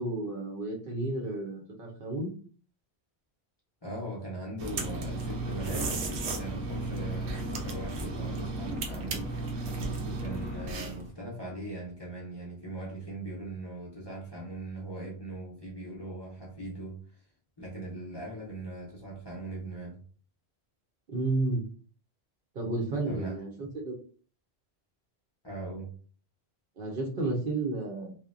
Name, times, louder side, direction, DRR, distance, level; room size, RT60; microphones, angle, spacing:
voice 1, 0.0-2.3 21.1-21.6 22.5-24.0 26.8-28.1, right 2 dB, 60° right, 1 dB, 0.8 m, -32 dB
voice 2, 3.8-9.7 10.0-17.2 17.6-20.0 23.0-23.4 25.4-25.9, right 1 dB, 30° left, -4 dB, 0.6 m, -40 dB
sound 1, 4.6-11.1, right 2 dB, 90° right, 0.9 m, -34 dB
2.8 x 2.1 x 2.4 m, 0.41 s
omnidirectional pair, 1.1 m